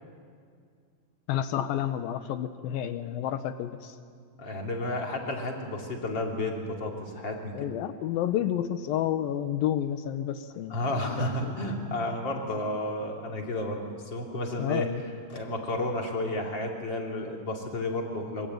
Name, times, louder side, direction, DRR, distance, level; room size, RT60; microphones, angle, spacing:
voice 1, 1.3-4.0 7.5-11.6 14.6-15.0, left 11 dB, 85° left, 9 dB, 2.7 m, -30 dB
voice 2, 4.4-7.7 10.7-14.9 15.3-18.5, left 1 dB, 30° left, 0 dB, 3.8 m, -32 dB
26.5 x 23.5 x 9.3 m, 2.2 s
omnidirectional pair, 4.2 m